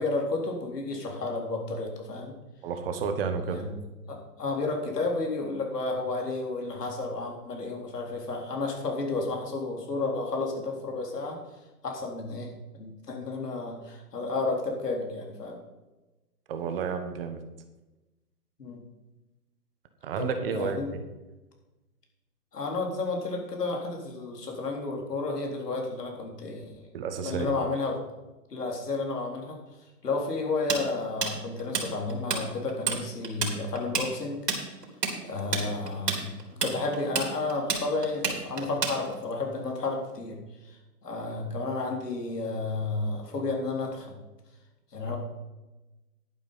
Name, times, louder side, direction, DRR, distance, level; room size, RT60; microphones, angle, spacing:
voice 1, 0.0-2.3 3.5-3.8 4.1-11.4 11.8-15.6 18.6-18.8 20.2-20.9 22.5-26.9 27.2-28.0 28.5-29.6 30.0-34.4 35.2-44.2 44.9-45.2, left 3 dB, 80° left, 0 dB, 4.0 m, -32 dB
voice 2, 2.6-3.6 16.5-17.4 20.0-21.0 26.9-27.5 45.0-45.1, right 5 dB, 35° right, 7 dB, 1.4 m, -31 dB
Tools, 30.7-32.4 32.7-33.0 33.2-39.3, right 5 dB, 80° right, 3.9 m, -29 dB
11.5 x 9.1 x 5.6 m, 1.1 s
hypercardioid pair, 145°, 47 cm